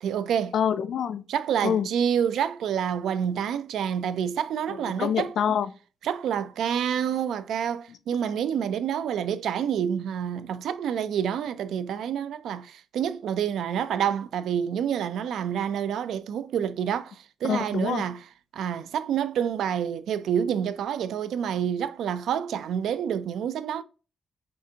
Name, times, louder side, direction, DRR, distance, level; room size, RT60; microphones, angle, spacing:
voice 1, 0.0-0.5 1.3-5.3 6.0-18.2 18.5-23.8, right 8 dB, 80° right, 0.3 m, -28 dB
voice 2, 0.5-1.2 1.6-1.9 4.7-5.7 17.4-18.0, left 8 dB, 60° left, 0.3 m, -26 dB
6.0 x 2.5 x 2.7 m
wide cardioid pair, 175°, 0 cm